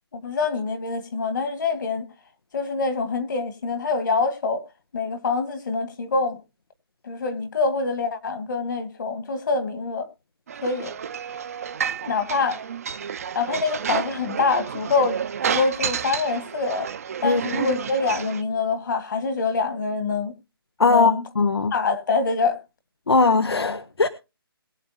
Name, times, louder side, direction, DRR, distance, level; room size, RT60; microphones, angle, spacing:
voice 1, 0.1-2.1 2.5-4.7 4.9-6.4 7.0-10.1 10.6-10.9 12.0-12.6 13.3-16.9 17.2-20.3 20.9-21.2 21.7-22.6, left 4 dB, 55° left, 2.1 m, -25 dB
sound 1, 10.5-18.4, right 7 dB, 35° right, 0.6 m, -30 dB
voice 2, 20.8-21.7 23.1-24.1, left 4 dB, 90° left, 1.0 m, -19 dB
22.0 x 7.5 x 2.9 m
hypercardioid pair, 160°, 13 cm